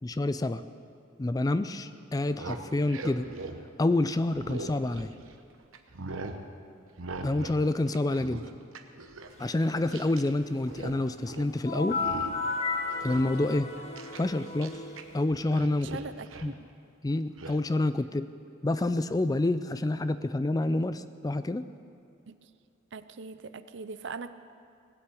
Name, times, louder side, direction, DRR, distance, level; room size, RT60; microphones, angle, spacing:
voice 1, 0.0-0.6 1.2-3.3 3.8-5.1 7.2-8.4 9.4-12.0 13.0-13.7 14.2-14.8 15.1-16.0 16.4-16.5 17.0-18.3 18.6-21.6, left 2 dB, 20° left, 12 dB, 0.3 m, -28 dB
sound 1, 2.3-5.4 5.7-6.4 7.0-7.6 7.9-10.3 10.6-11.0 11.3-11.5 11.9-12.5 12.9-15.0 15.3-16.5 17.4-17.6, right 3 dB, 85° right, 1.0 m, -41 dB
sound 2, 11.6-15.2, left 4 dB, 35° left, 1.3 m, -33 dB
voice 2, 15.8-16.5 22.3-22.4 22.9-24.3, right 4 dB, 60° right, 12 dB, 0.6 m, -40 dB
19.0 x 8.1 x 8.4 m, 2.4 s
head